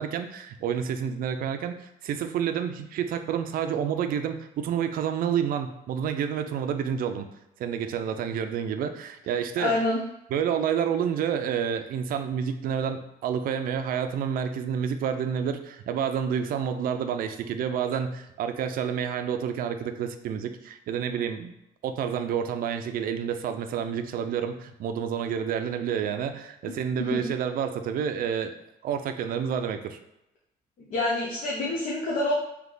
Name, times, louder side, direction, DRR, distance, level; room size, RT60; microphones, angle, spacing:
voice 1, 0.0-7.3 7.6-9.7 10.3-21.5 21.8-28.5 28.8-30.0, right 8 dB, 65° right, 8 dB, 0.5 m, -29 dB
voice 2, 9.6-10.0 27.0-27.2 30.9-32.3, left 2 dB, 60° left, -4 dB, 0.9 m, -27 dB
3.4 x 2.8 x 3.8 m, 0.84 s
cardioid pair, 100°, 16 cm